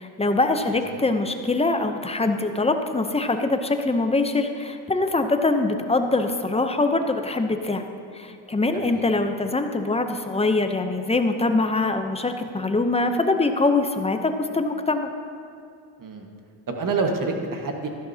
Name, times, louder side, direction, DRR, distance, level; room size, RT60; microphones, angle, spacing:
voice 1, 0.0-7.8 8.1-15.1, left 2 dB, 15° left, 6 dB, 0.6 m, -23 dB
voice 2, 8.7-9.1 16.0-16.3 16.7-17.9, right 4 dB, 40° right, 3 dB, 1.5 m, -28 dB
14.0 x 11.5 x 2.8 m, 2.4 s
cardioid pair, 95°, 49 cm